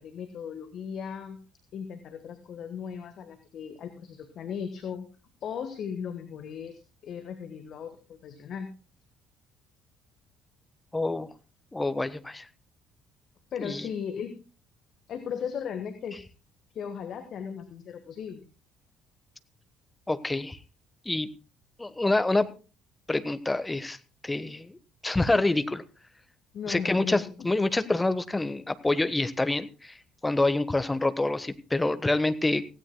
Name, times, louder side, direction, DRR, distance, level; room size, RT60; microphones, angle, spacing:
voice 1, 0.0-1.4 1.7-5.1 5.4-8.7 13.5-14.3 15.1-16.2 16.7-18.4 26.5-27.5, left 7 dB, 50° left, 8 dB, 1.4 m, -37 dB
voice 2, 10.9-11.3 11.7-12.5 13.6-13.9 20.1-20.6 21.0-21.3 21.8-22.5 23.1-24.0 24.2-24.8 25.0-25.8 26.7-29.9 30.2-32.6, left 2 dB, 15° left, 12 dB, 1.1 m, -26 dB
17.0 x 16.0 x 2.2 m, 0.35 s
figure-of-eight pair, 50°, 0 cm